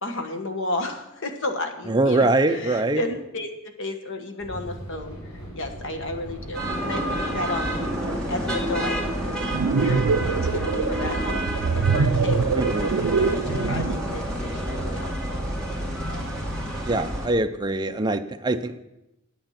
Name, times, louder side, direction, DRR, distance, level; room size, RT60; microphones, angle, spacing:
voice 1, 0.0-7.8 8.3-9.1 9.8-11.4 11.8-12.5 12.8-15.4, left 2 dB, 60° left, 5 dB, 1.4 m, -33 dB
voice 2, 1.9-3.0 12.5-12.9 16.9-18.8, right 2 dB, 20° right, 8 dB, 0.5 m, -23 dB
sound 1, 4.4-17.3, right 1 dB, 25° left, 4.2 m, -40 dB
sound 2, 6.5-17.3, right 1 dB, 5° left, 2.3 m, -29 dB
sound 3, 9.3-14.1, right 5 dB, 80° right, 0.4 m, -24 dB
9.2 x 8.8 x 5.8 m, 0.90 s
head